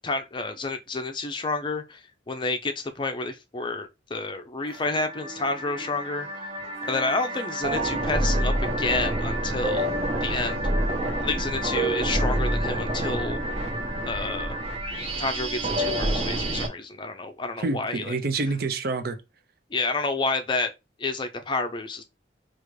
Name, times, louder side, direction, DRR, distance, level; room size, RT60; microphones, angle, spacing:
voice 1, 0.0-2.0 2.3-6.3 6.9-9.9 10.2-10.6 11.2-13.4 14.1-14.6 15.2-18.2 19.7-20.7 21.0-22.0, left 3 dB, 25° left, 0.5 m, -29 dB
sound 1, 4.7-16.7, right 1 dB, 35° right, 0.9 m, -28 dB
voice 2, 17.6-19.2, right 3 dB, 55° right, 0.6 m, -27 dB
5.0 x 2.5 x 3.1 m
head